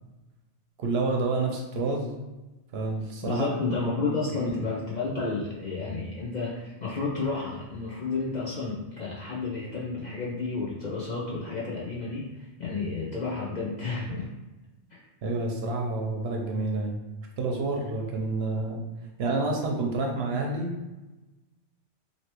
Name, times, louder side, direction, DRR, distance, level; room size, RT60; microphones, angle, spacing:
voice 1, 0.8-2.1 2.7-3.5 4.2-4.6 15.2-17.0 17.4-18.8 19.2-20.7, right 3 dB, 65° right, 1 dB, 0.7 m, -29 dB
voice 2, 3.2-14.3, left 3 dB, 50° left, -6 dB, 0.5 m, -31 dB
3.0 x 2.8 x 2.9 m, 1.1 s
omnidirectional pair, 1.2 m